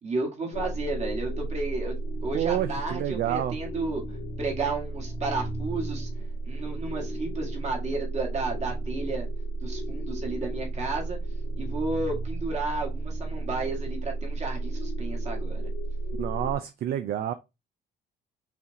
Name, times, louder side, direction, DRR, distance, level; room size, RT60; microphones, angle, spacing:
voice 1, 0.0-1.9 2.2-6.1 6.4-9.3 9.6-11.2 11.6-15.6, right 3 dB, 40° right, 1.7 m, -32 dB
sound 1, 0.5-16.6, right 2 dB, 70° left, 1.5 m, -33 dB
voice 2, 2.3-3.6 16.2-17.3, right 11 dB, 60° right, 0.4 m, -28 dB
5.6 x 2.4 x 2.7 m
cardioid pair, 100°, 18 cm